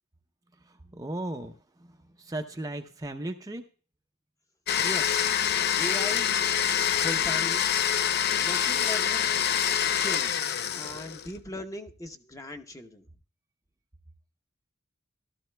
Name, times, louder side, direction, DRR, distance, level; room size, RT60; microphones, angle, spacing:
voice 1, 0.6-3.6, right 1 dB, 15° right, 5 dB, 0.6 m, -37 dB
Domestic sounds home sounds, 4.7-11.3, left 9 dB, 50° left, 0.5 m, -26 dB
voice 2, 4.8-5.3 5.8-6.3 7.0-7.6 8.4-9.3 10.0-10.4 10.7-13.1, left 1 dB, 15° left, 7 dB, 0.8 m, -38 dB
15.5 x 12.5 x 2.2 m, 0.37 s
head